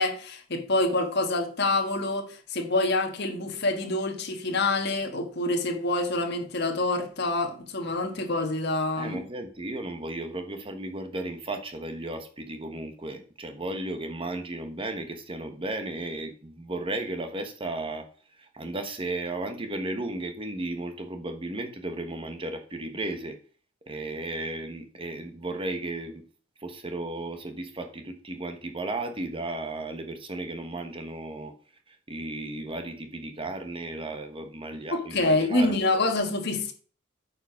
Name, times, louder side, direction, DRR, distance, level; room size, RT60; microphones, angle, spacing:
voice 1, 0.0-9.2 34.9-36.7, left 2 dB, 55° left, 1.4 m, -26 dB
voice 2, 9.0-18.0 18.4-23.4 23.9-26.2 26.6-31.5 31.9-36.1, right 2 dB, 25° right, 1.2 m, -34 dB
8.8 x 5.0 x 4.8 m
head